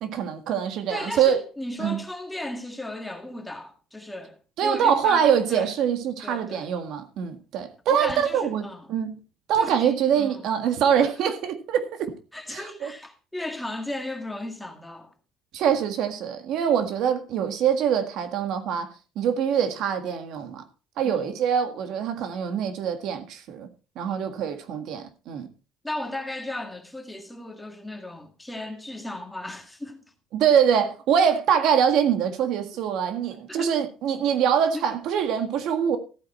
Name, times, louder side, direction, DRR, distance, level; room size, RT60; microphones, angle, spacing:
voice 1, 0.0-1.4 1.8-2.0 4.6-9.2 9.5-12.1 12.5-12.9 15.5-18.9 19.2-20.6 21.0-23.7 24.0-25.5 30.3-36.0, right 8 dB, 60° right, 1.7 m, -24 dB
voice 2, 0.9-5.7 6.2-6.7 7.9-8.9 9.5-10.5 11.0-11.1 12.3-15.1 21.0-21.3 24.1-24.4 25.8-30.0 33.5-33.8 34.7-34.9, left 1 dB, 5° left, 1.8 m, -36 dB
14.5 x 8.9 x 4.3 m
cardioid pair, 155°, 0 cm